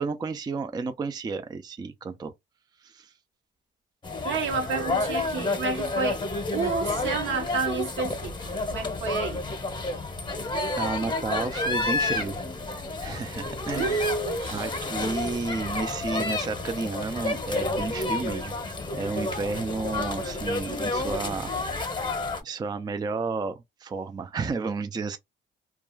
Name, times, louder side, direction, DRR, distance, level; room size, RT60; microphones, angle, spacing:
voice 1, 0.0-2.3 2.8-3.1 10.8-12.4 13.0-14.1 14.5-18.5 18.9-21.5 22.4-25.2, right 4 dB, 20° right, 0.4 m, -32 dB
sound 1, 4.0-22.4, left 2 dB, 25° left, 0.8 m, -30 dB
voice 2, 4.2-6.2 6.5-9.4 13.7-14.7, right 4 dB, 70° right, 0.9 m, -30 dB
2.3 x 2.3 x 2.9 m
cardioid pair, 90°, 20 cm